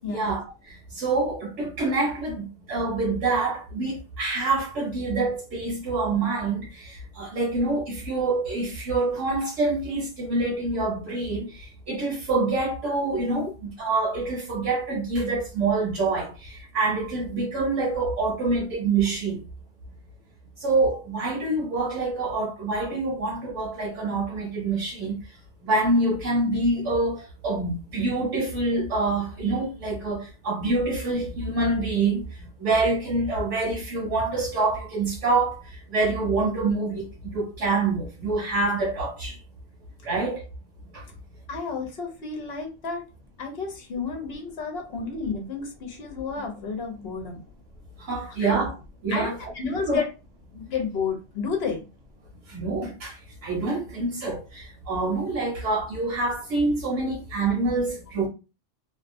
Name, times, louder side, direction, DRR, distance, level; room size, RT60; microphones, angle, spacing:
voice 1, 0.0-19.4 20.6-25.2 25.6-32.2 32.6-37.1 37.3-39.3 40.0-40.4 40.9-41.0 48.0-48.7 49.0-49.3 49.6-50.0 52.5-58.3, right 3 dB, 70° right, 1.3 m, -26 dB
voice 2, 41.5-43.1 43.4-47.4 48.4-48.5 49.1-50.1 50.5-51.9, left 5 dB, 60° left, 0.9 m, -31 dB
2.8 x 2.1 x 2.6 m
omnidirectional pair, 1.3 m